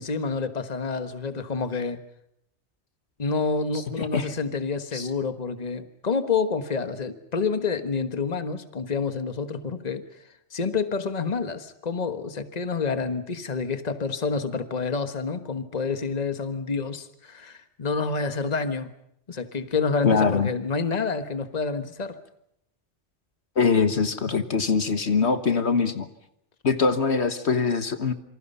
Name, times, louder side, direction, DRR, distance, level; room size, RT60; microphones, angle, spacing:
voice 1, 0.0-2.0 3.2-10.0 10.5-18.9 19.3-22.2, left 4 dB, 35° left, 10 dB, 1.5 m, -28 dB
voice 2, 3.7-4.3 4.9-5.1 20.0-20.5 23.6-26.1 26.6-28.1, left 5 dB, 65° left, 10 dB, 1.6 m, -23 dB
27.5 x 25.5 x 5.6 m, 0.75 s
omnidirectional pair, 1.2 m